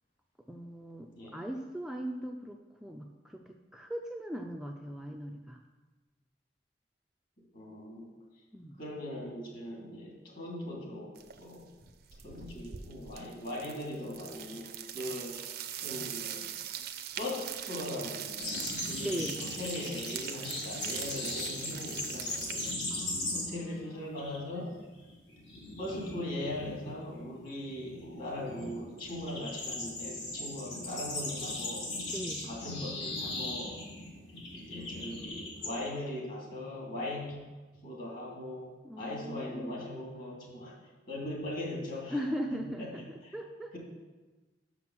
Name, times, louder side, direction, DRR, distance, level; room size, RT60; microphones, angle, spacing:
voice 1, 0.5-5.6 8.5-8.7 19.0-19.4 22.9-24.0 32.1-32.5 38.8-39.9 42.1-43.7, equal, ahead, 2 dB, 0.3 m, -39 dB
voice 2, 7.5-8.1 8.8-11.7 12.2-16.5 17.2-22.8 23.3-24.7 25.8-31.9 32.4-33.8 34.5-37.3 37.7-38.7 39.0-40.8 41.1-42.2 42.5-42.9 43.2-43.3, left 1 dB, 50° left, -3 dB, 2.4 m, -40 dB
sound 1, 11.2-11.5 11.8-22.8, right 10 dB, 55° right, 0.5 m, -42 dB
sound 2, 18.4-23.8 24.0-24.4 24.7-35.7, left 2 dB, 75° left, 1.7 m, -38 dB
6.4 x 5.9 x 6.0 m, 1.2 s
head